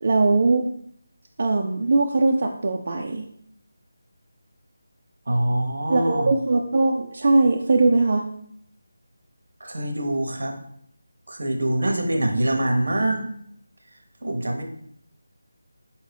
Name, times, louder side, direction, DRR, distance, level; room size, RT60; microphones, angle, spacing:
voice 1, 0.0-0.6 1.4-3.3 5.9-8.3, right 3 dB, 40° right, 2 dB, 0.3 m, -20 dB
voice 2, 5.3-6.3 9.6-10.5 11.3-13.3 14.2-14.6, right 1 dB, 70° right, 4 dB, 0.8 m, -24 dB
4.3 x 2.6 x 3.3 m, 0.68 s
figure-of-eight pair, 175°, 0 cm